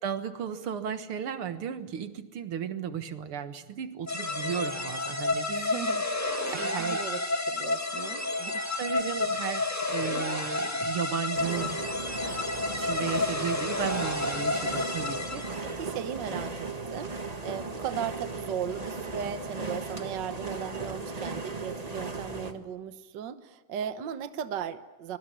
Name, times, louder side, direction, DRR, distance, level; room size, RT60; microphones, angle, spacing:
voice 1, 0.0-5.7 6.5-7.0 8.8-11.8 12.8-16.0, right 8 dB, 80° right, 10 dB, 2.4 m, -35 dB
sound 1, 4.1-15.7, left 2 dB, 10° left, 1.7 m, -31 dB
voice 2, 5.5-6.3 6.6-8.6 15.6-25.2, right 9 dB, 60° right, 11 dB, 1.6 m, -37 dB
sound 2, 11.3-22.5, right 3 dB, 20° right, 1.5 m, -36 dB
24.5 x 22.5 x 9.9 m, 1.1 s
omnidirectional pair, 2.4 m